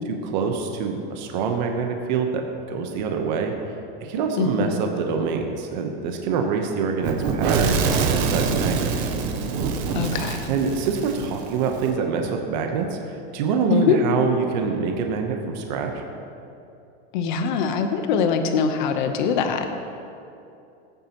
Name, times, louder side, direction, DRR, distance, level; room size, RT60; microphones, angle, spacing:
voice 1, 0.1-3.5 4.0-8.9 10.5-16.0, right 5 dB, 45° right, 3 dB, 1.0 m, -25 dB
voice 2, 4.4-4.8 9.9-10.5 13.7-14.0 17.1-19.7, left 6 dB, 50° left, 6 dB, 1.0 m, -23 dB
Fire / Explosion, 7.0-11.9, right 5 dB, 30° right, 0.7 m, -25 dB
18.0 x 9.3 x 3.0 m, 2.6 s
supercardioid pair, 180°, 31 cm